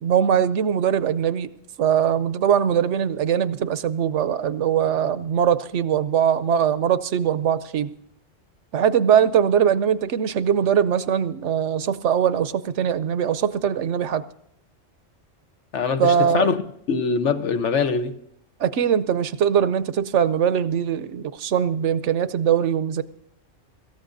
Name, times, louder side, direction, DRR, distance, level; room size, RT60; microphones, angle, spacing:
voice 1, 0.0-1.5 1.8-7.9 8.7-14.2 16.0-16.5 18.6-23.0, right 8 dB, 70° right, 1.0 m, -21 dB
voice 2, 15.7-16.6 16.9-18.2, left 5 dB, 70° left, 1.2 m, -23 dB
25.5 x 14.0 x 2.6 m
omnidirectional pair, 1.3 m